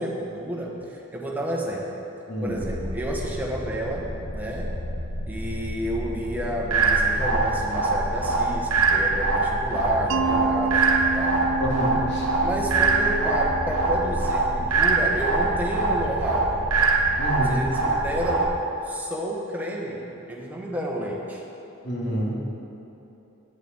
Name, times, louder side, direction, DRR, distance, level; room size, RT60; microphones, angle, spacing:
voice 1, 0.0-2.0 2.4-4.7 5.3-11.4 12.4-16.6 17.4-18.5 18.8-21.4, right 1 dB, 10° right, -3 dB, 1.4 m, -30 dB
voice 2, 2.3-2.6 11.6-12.3 17.2-17.6 21.8-22.3, right 1 dB, 55° left, -3 dB, 2.2 m, -27 dB
sound 1, 2.5-18.5, equal, 70° left, 3.1 m, -33 dB
sound 2, 6.7-18.7, right 3 dB, 90° right, 1.1 m, -24 dB
Mallet percussion, 10.1-14.9, right 4 dB, 60° right, 0.3 m, -30 dB
8.9 x 8.2 x 8.2 m, 2.9 s
head